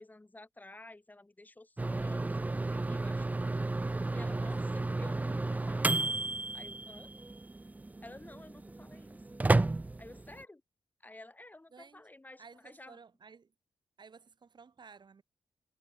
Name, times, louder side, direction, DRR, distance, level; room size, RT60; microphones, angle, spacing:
voice 1, 0.0-3.6 4.1-7.1 8.0-9.4 10.0-10.6 11.0-13.0, left 2 dB, 15° left, 1.4 m, -52 dB
sound 1, 1.8-10.4, right 2 dB, 15° right, 0.4 m, -33 dB
voice 2, 11.7-12.0 12.4-13.5 14.0-15.2, right 5 dB, 45° right, 2.0 m, -55 dB
cardioid pair, 105°, 10 cm